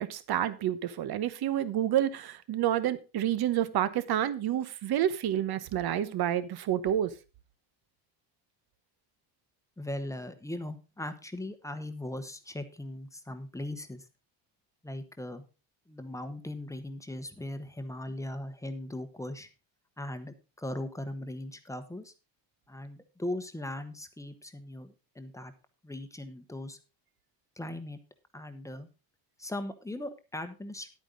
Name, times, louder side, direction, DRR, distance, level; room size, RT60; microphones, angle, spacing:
voice 1, 0.0-7.1, right 11 dB, 55° right, 1.1 m, -29 dB
voice 2, 9.8-14.1 14.8-15.4 15.9-19.5 20.0-22.1 22.7-25.5 25.8-26.8 27.6-28.0 28.3-28.9 29.4-30.9, left 1 dB, 5° left, 1.0 m, -39 dB
10.5 x 9.0 x 3.9 m
cardioid pair, 145°, 46 cm